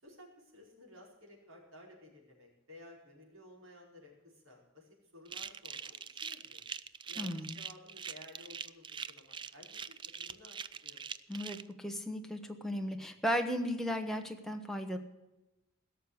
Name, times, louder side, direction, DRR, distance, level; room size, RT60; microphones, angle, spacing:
voice 1, 0.0-6.6 7.0-11.0, left 1 dB, 80° right, -1 dB, 5.0 m, -56 dB
sound 1, 5.3-11.6, right 7 dB, 25° right, 0.4 m, -43 dB
voice 2, 7.2-7.6 11.3-15.0, equal, ahead, 4 dB, 1.3 m, -35 dB
17.0 x 6.8 x 8.2 m, 0.98 s
head